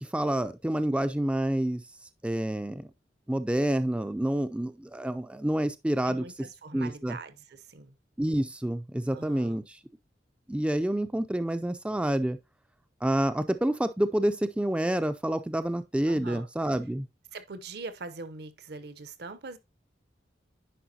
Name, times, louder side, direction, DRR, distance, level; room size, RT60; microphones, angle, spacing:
voice 1, 0.0-1.8 2.2-2.9 3.3-6.2 6.7-7.2 8.2-9.8 10.5-12.4 13.0-17.1, right 1 dB, 5° right, 0.3 m, -28 dB
voice 2, 6.0-8.0 9.1-9.6 16.1-16.5 17.3-19.6, right 3 dB, 60° right, 0.8 m, -42 dB
10.0 x 4.8 x 2.7 m
head